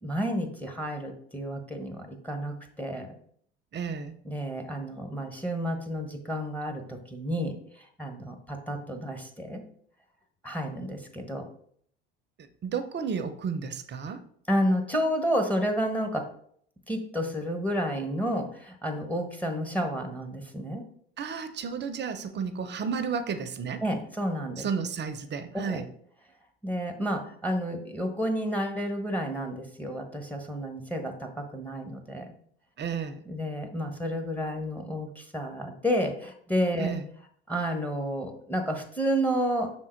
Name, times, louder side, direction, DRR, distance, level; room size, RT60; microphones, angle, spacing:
voice 1, 0.0-3.1 4.2-9.6 10.4-11.5 14.5-16.3 16.9-20.8 23.8-24.7 25.6-25.8 26.6-32.3 33.3-36.9 37.5-39.7, equal, 5° left, 5 dB, 1.1 m, -30 dB
voice 2, 3.7-4.1 12.6-14.2 21.2-23.8 24.6-25.8 32.8-33.2 36.8-37.0, right 6 dB, 35° right, 10 dB, 0.8 m, -32 dB
5.9 x 3.7 x 4.5 m, 0.63 s
hypercardioid pair, 80°, 30 cm